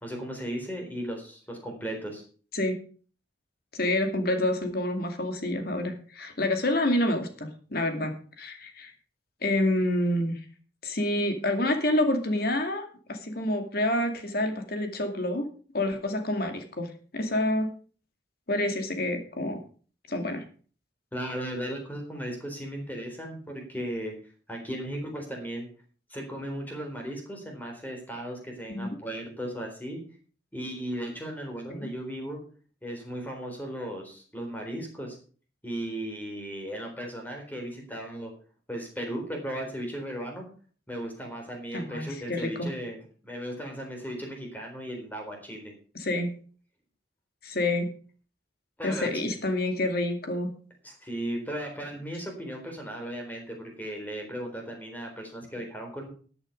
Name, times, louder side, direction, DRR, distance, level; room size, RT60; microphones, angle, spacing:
voice 1, 0.0-2.2 21.1-24.1 24.5-25.7 26.1-30.0 30.5-32.4 32.8-35.2 35.6-38.3 38.7-40.5 40.9-45.7 48.8-49.1 50.8-56.1, right 1 dB, 10° left, 2 dB, 4.0 m, -36 dB
voice 2, 3.7-8.9 9.4-10.4 10.8-15.4 15.7-17.7 18.5-19.6 20.1-20.4 28.7-29.0 31.7-31.9 41.7-42.7 45.9-46.3 47.4-47.9 48.8-50.5, left 1 dB, 55° left, 6 dB, 2.4 m, -28 dB
13.5 x 8.8 x 5.3 m, 0.41 s
head